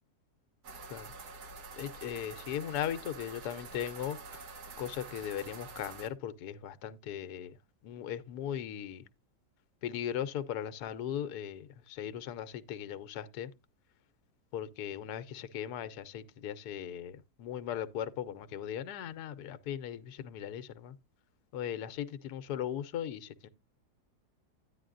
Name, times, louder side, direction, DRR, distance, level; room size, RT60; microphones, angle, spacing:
sound 1, 0.6-6.1, right 4 dB, 70° right, 1.7 m, -47 dB
voice 1, 1.8-4.4 4.8-7.5 7.8-9.0 9.8-13.5 14.5-20.9 21.5-23.5, left 10 dB, 75° left, 1.2 m, -38 dB
10.0 x 9.9 x 2.5 m
omnidirectional pair, 1.7 m